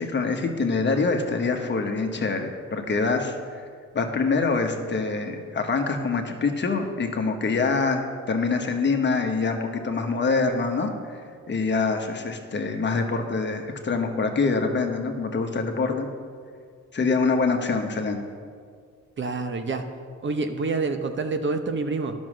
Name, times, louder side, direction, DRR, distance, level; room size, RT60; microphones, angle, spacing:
voice 1, 0.0-3.6 3.9-11.2 11.5-16.1 16.9-18.2, left 4 dB, 35° left, 4 dB, 1.2 m, -25 dB
voice 2, 19.2-19.8 20.2-22.1, right 3 dB, 40° right, 6 dB, 0.8 m, -27 dB
10.5 x 6.3 x 6.3 m, 2.1 s
cardioid pair, 90°, 30 cm